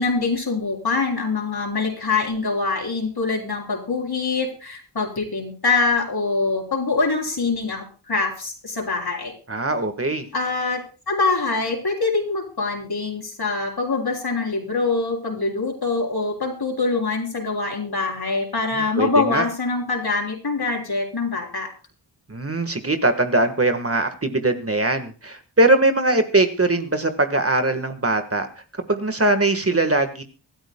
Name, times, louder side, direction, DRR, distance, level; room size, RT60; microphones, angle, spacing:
voice 1, 0.0-9.3 10.3-21.7, left 3 dB, 55° left, 1 dB, 3.8 m, -24 dB
voice 2, 9.5-10.3 18.7-19.5 22.3-28.5 28.9-30.2, right 2 dB, 30° right, 7 dB, 1.5 m, -21 dB
24.5 x 12.5 x 2.2 m, 0.34 s
wide cardioid pair, 70°, 44 cm